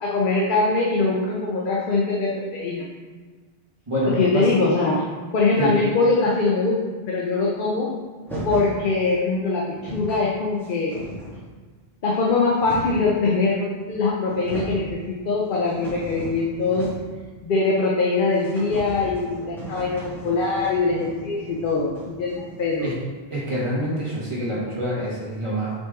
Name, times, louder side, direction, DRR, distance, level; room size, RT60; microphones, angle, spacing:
voice 1, 0.0-2.9 4.2-5.1 5.3-6.8 7.1-7.9 8.4-11.0 12.0-16.9 17.4-22.9, left 3 dB, 55° left, -3 dB, 0.9 m, -22 dB
voice 2, 3.9-4.5 5.6-5.7 22.8-22.9 23.3-25.7, equal, 30° right, -7 dB, 1.8 m, -26 dB
sound 1, 8.2-8.8 9.4-9.5 9.7-10.2 10.6-11.5 12.1-13.1 13.9-14.0 14.2-14.8 15.2-17.2 17.5-17.6 17.9-18.0 18.3-22.9, right 1 dB, ahead, 1.9 m, -36 dB
5.6 x 5.4 x 3.8 m, 1.4 s
omnidirectional pair, 1.1 m